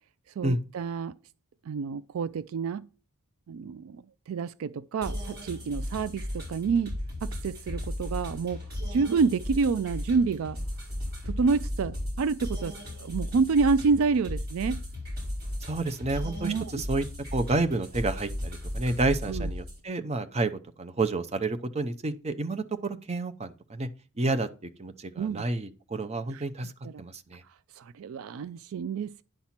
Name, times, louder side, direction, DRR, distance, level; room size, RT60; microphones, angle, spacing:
voice 1, 0.4-1.1 1.7-2.8 3.5-8.6 8.9-10.6 11.3-14.8 16.4-16.7 19.3-19.5 25.2-25.4 26.3-26.4 26.9-27.0 27.8-29.2, right 5 dB, 65° right, 0.3 m, -28 dB
sound 1, 5.0-19.8, left 1 dB, 45° right, 5.4 m, -35 dB
voice 2, 15.6-17.1 17.3-20.5 20.8-23.9 24.2-24.5 24.8-26.7 27.0-27.4, right 2 dB, 30° right, 0.7 m, -30 dB
10.5 x 4.3 x 5.8 m
head